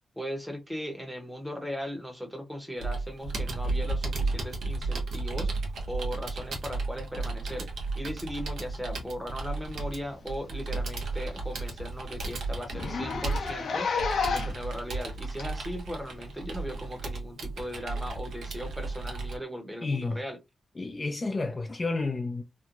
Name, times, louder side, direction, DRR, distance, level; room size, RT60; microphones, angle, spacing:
voice 1, 0.2-7.7 7.9-20.4, equal, 5° right, 0.8 m, -38 dB
Computer keyboard, 2.8-19.4, right 3 dB, 80° right, 0.8 m, -34 dB
Zipper (clothing), 10.1-10.2 10.6-10.7 11.1-11.2 11.5-11.6 11.9-12.0 12.7-14.7 15.4-15.5 16.5-16.6, left 5 dB, 70° left, 0.6 m, -30 dB
voice 2, 19.8-20.2 20.8-22.4, left 3 dB, 30° left, 0.3 m, -30 dB
2.9 x 2.1 x 2.5 m
cardioid pair, 105°, 0 cm